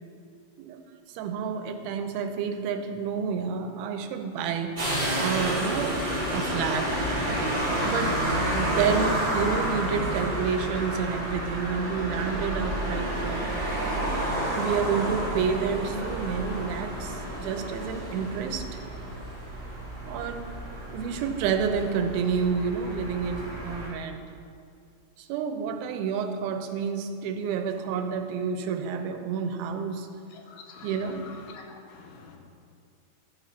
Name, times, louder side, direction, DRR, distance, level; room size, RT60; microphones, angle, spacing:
voice 1, 1.1-4.8 5.2-6.0 6.3-7.0 7.8-8.2 8.5-13.5 14.6-18.8 20.1-20.5 20.9-24.2 25.2-30.1 30.8-31.2, right 6 dB, 90° right, 6 dB, 2.5 m, -29 dB
sound 1, 4.8-23.9, right 1 dB, 15° right, 2.4 m, -30 dB
voice 2, 30.5-30.9 31.3-32.4, left 5 dB, 85° left, 1 dB, 2.8 m, -47 dB
12.0 x 5.0 x 5.8 m, 2.3 s
omnidirectional pair, 4.3 m